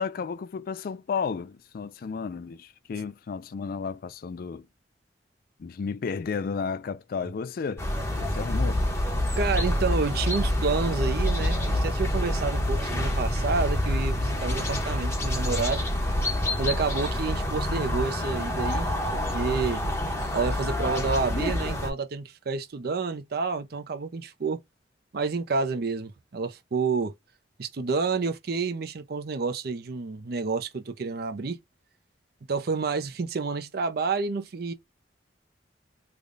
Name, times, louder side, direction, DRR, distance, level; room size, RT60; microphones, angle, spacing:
voice 1, 0.0-4.7 5.6-7.9 8.2-8.8, left 5 dB, 55° left, 0.3 m, -33 dB
sound 1, 7.8-21.9, left 1 dB, 15° left, 0.9 m, -27 dB
voice 2, 9.4-15.9 16.6-19.8 20.3-24.6 25.1-27.1 27.6-31.6 32.5-34.7, right 4 dB, 60° right, 0.5 m, -29 dB
3.4 x 2.2 x 3.7 m
head